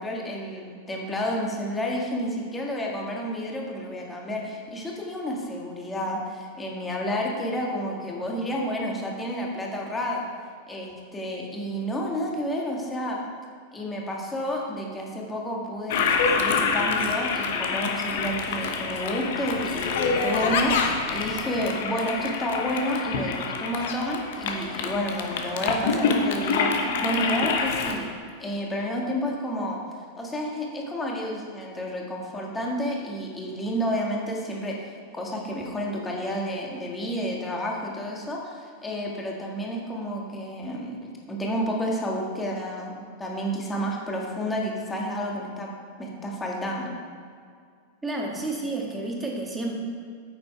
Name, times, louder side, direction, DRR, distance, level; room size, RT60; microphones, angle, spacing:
voice 1, 0.0-10.2 10.7-13.2 13.7-28.1 28.4-29.8 30.2-45.7 46.0-46.9, equal, 10° left, -2 dB, 1.9 m, -30 dB
Toilet flush, 15.9-27.9, left 5 dB, 55° left, 1.0 m, -26 dB
voice 2, 48.0-49.7, right 2 dB, 10° right, -1 dB, 1.8 m, -30 dB
9.4 x 7.9 x 4.5 m, 2.1 s
figure-of-eight pair, 90°, 0 cm